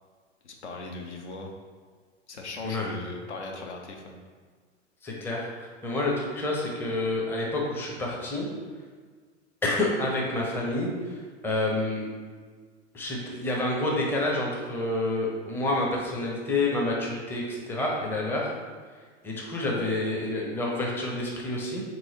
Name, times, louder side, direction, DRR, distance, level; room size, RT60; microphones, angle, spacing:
voice 1, 0.4-1.5 2.3-4.2, left 2 dB, 70° left, 2 dB, 0.7 m, -38 dB
voice 2, 5.0-8.5 9.6-12.1 12.9-18.5 19.2-21.8, left 2 dB, 5° left, -3 dB, 0.5 m, -28 dB
3.7 x 3.1 x 4.0 m, 1.5 s
figure-of-eight pair, 90°, 36 cm